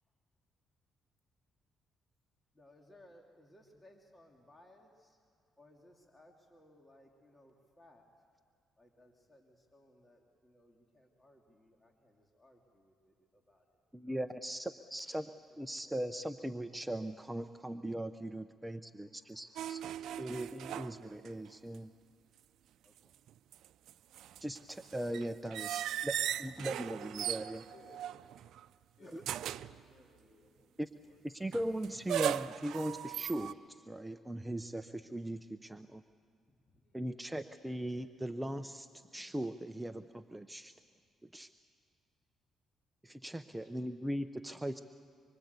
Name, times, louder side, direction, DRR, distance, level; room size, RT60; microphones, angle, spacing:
voice 1, 2.5-5.2 5.6-8.1 8.8-14.5 15.1-15.6 15.8-16.2 19.1-20.3 22.8-23.2 24.3-24.4 26.2-26.7 27.8-28.1 29.0-29.5 35.8-36.1 36.5-37.1, left 1 dB, 15° left, 1 dB, 2.8 m, -62 dB
voice 2, 13.9-15.3 15.6-19.8 20.2-21.9 24.4-26.1 26.4-27.6 30.8-30.9 31.2-36.0 36.9-40.7 41.3-41.5 43.0-44.8, right 1 dB, 10° right, 8 dB, 0.7 m, -39 dB
sound 1, 19.6-21.5 21.7-21.8 23.3-28.6 29.2-29.8 31.5-33.5, right 11 dB, 80° right, 0.5 m, -38 dB
voice 3, 27.7-28.0 29.0-31.5 36.8-37.2 43.2-43.7, left 3 dB, 45° left, 2 dB, 6.7 m, -64 dB
25.5 x 24.0 x 8.2 m, 2.3 s
cardioid pair, 90°, 0 cm